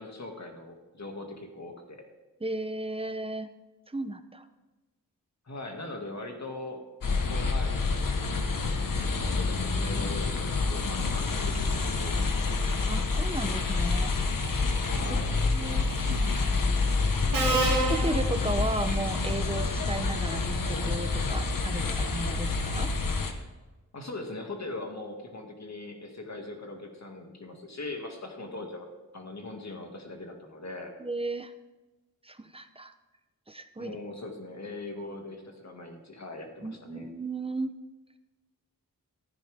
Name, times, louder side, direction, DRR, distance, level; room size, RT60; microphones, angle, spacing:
voice 1, 0.0-2.0 5.5-6.8 7.2-7.8 8.7-12.9 14.9-15.3 23.9-28.9 29.1-30.9 33.8-37.1, left 2 dB, 50° left, 2 dB, 2.2 m, -40 dB
voice 2, 2.4-3.5 3.9-4.5 12.9-14.1 15.5-16.9 17.5-22.9 31.0-31.5 32.2-32.9 33.5-34.0 36.6-37.7, right 2 dB, 15° right, 10 dB, 0.8 m, -35 dB
sound 1, 7.0-23.3, left 3 dB, 65° left, 1.3 m, -28 dB
Subway metro underground, 15.8-16.2 17.3-19.0, right 3 dB, 60° right, 2.2 m, -29 dB
14.5 x 10.0 x 3.6 m, 1.2 s
wide cardioid pair, 75°, 36 cm